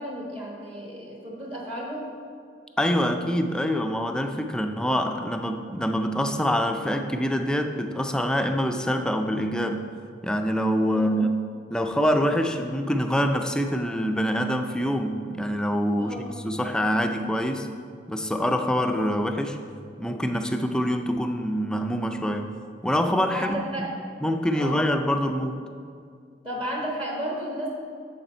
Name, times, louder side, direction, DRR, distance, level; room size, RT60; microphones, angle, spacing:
voice 1, 0.0-2.1 10.9-11.1 16.0-16.3 23.3-23.9 24.5-24.8 26.4-27.7, right 1 dB, 30° right, -3 dB, 1.3 m, -33 dB
voice 2, 2.8-9.9 10.2-11.3 11.7-16.2 16.4-17.7 18.1-19.6 20.0-22.5 22.8-23.6 24.2-25.6, equal, 5° left, 5 dB, 0.4 m, -25 dB
7.7 x 6.7 x 4.4 m, 2.2 s
head